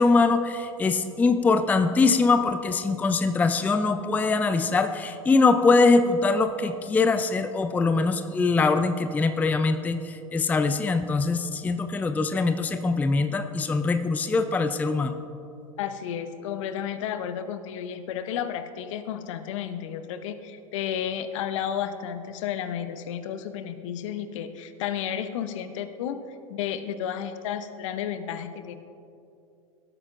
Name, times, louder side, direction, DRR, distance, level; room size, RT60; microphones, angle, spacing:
voice 1, 0.0-15.1, left 3 dB, 10° left, 9 dB, 0.4 m, -23 dB
voice 2, 15.8-26.2 26.5-28.8, left 9 dB, 60° left, 11 dB, 0.7 m, -32 dB
17.0 x 8.8 x 2.5 m, 2.6 s
figure-of-eight pair, 85°, 18 cm